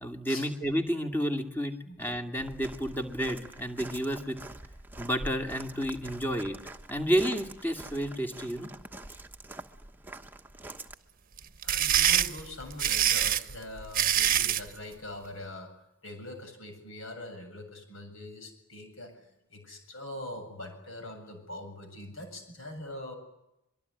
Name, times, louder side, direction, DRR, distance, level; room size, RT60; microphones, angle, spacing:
voice 1, 0.0-4.4 5.0-6.6 6.9-8.7, equal, 10° left, 5 dB, 2.4 m, -31 dB
Walk footsteps, 2.4-10.9, right 2 dB, 10° right, 1.2 m, -45 dB
sound 1, 11.4-14.7, right 10 dB, 45° right, 1.0 m, -25 dB
voice 2, 11.6-19.2 19.5-23.1, left 1 dB, 70° left, 6 dB, 7.7 m, -43 dB
24.5 x 23.0 x 9.9 m, 0.87 s
head